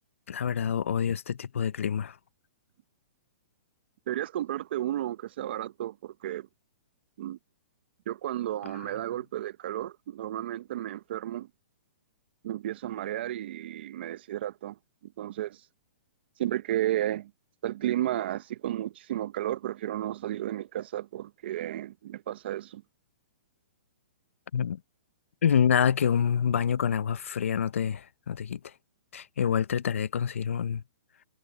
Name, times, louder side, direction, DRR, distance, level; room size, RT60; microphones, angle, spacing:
voice 1, 0.3-2.2 24.5-24.8 25.4-28.7 29.1-30.8, left 8 dB, 80° left, 0.8 m, -27 dB
voice 2, 4.1-6.5 7.2-7.4 8.1-11.5 12.4-14.8 15.0-15.6 16.4-17.3 17.6-22.8, right 13 dB, 55° right, 0.8 m, -33 dB
hypercardioid pair, 155°, 7 cm